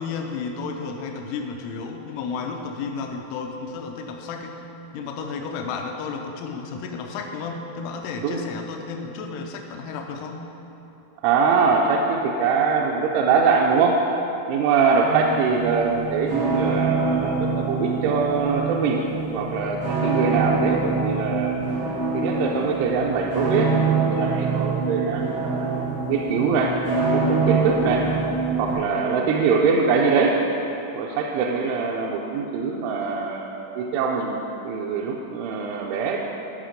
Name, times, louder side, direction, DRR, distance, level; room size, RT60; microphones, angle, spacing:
voice 1, 0.0-4.6 4.9-10.5 15.3-15.4, left 5 dB, 85° left, 3 dB, 3.2 m, -32 dB
voice 2, 11.2-14.0 14.5-19.0 19.3-21.6 22.1-26.8 27.1-28.1 28.6-30.4 30.9-36.2, right 5 dB, 80° right, -1 dB, 2.9 m, -23 dB
sound 1, 15.0-28.7, right 4 dB, 45° right, 0.9 m, -25 dB
12.5 x 5.9 x 5.1 m, 2.9 s
omnidirectional pair, 5.6 m